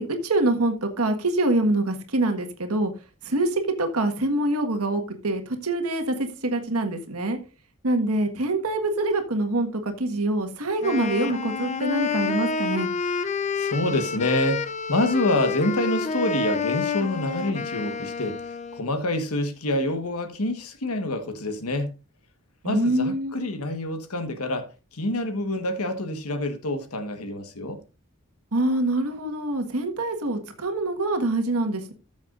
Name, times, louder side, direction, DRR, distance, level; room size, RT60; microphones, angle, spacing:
voice 1, 0.0-2.9 3.2-7.4 7.8-12.9 22.6-23.4 28.5-31.9, right 2 dB, 85° right, 1.6 m, -25 dB
Wind instrument woodwind instrument, 10.8-18.9, left 5 dB, 30° left, 0.6 m, -29 dB
voice 2, 13.5-21.9 22.6-24.7 24.9-27.8, left 1 dB, 90° left, 1.5 m, -27 dB
14.5 x 7.2 x 2.5 m
head